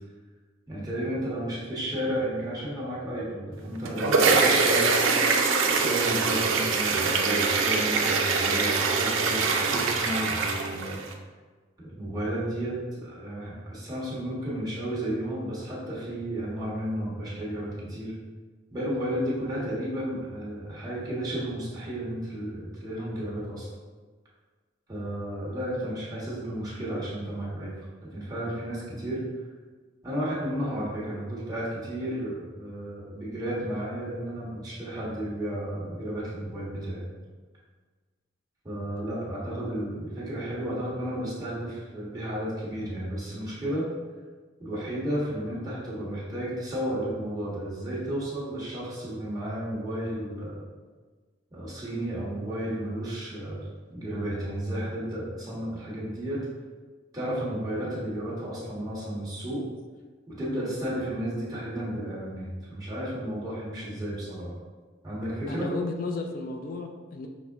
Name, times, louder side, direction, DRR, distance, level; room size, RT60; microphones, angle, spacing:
voice 1, 0.7-5.0 5.7-11.0 11.8-18.1 18.7-23.7 24.9-29.2 30.0-37.1 38.6-43.9 44.6-50.6 51.5-53.6 53.9-56.4 57.1-59.6 60.3-64.5 65.0-65.7, right 1 dB, 20° right, -8 dB, 1.3 m, -33 dB
sound 1, 3.6-11.1, right 4 dB, 80° right, 0.5 m, -24 dB
voice 2, 65.5-67.3, left 3 dB, 45° left, 3 dB, 0.3 m, -33 dB
5.7 x 2.1 x 3.5 m, 1.4 s
head